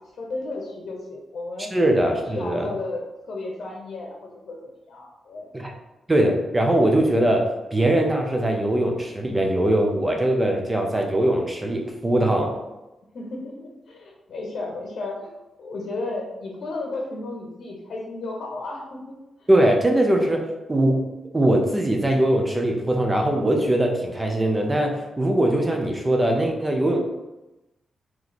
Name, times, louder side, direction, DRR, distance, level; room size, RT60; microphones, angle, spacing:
voice 1, 0.0-1.7 2.3-4.6 4.9-5.5 13.1-15.3 15.6-19.1 19.4-19.5, left 2 dB, 65° left, -1 dB, 0.8 m, -33 dB
voice 2, 1.7-2.7 5.5-5.7 6.1-12.6 19.5-21.1 21.3-27.0, right 1 dB, 20° right, 2 dB, 0.7 m, -21 dB
3.2 x 3.1 x 4.0 m, 0.99 s
cardioid pair, 110°, 0 cm